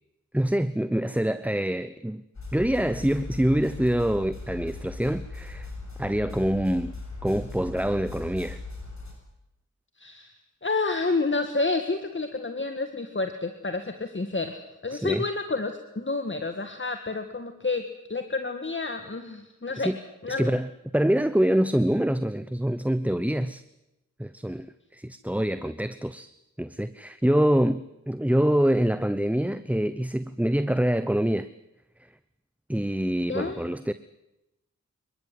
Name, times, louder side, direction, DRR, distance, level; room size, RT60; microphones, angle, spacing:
voice 1, 0.3-2.2 2.5-5.7 6.0-6.9 7.2-8.6 14.9-15.2 19.8-20.0 20.4-20.7 20.9-23.6 24.2-26.3 26.6-31.5 32.7-33.9, right 1 dB, 5° right, 13 dB, 0.9 m, -25 dB
sound 1, 2.3-9.1, left 3 dB, 55° left, 7.1 m, -39 dB
voice 2, 10.0-17.8 18.1-19.9 20.2-20.6 33.3-33.6, left 3 dB, 35° left, 7 dB, 1.9 m, -29 dB
27.0 x 14.5 x 9.5 m, 0.94 s
cardioid pair, 45°, 33 cm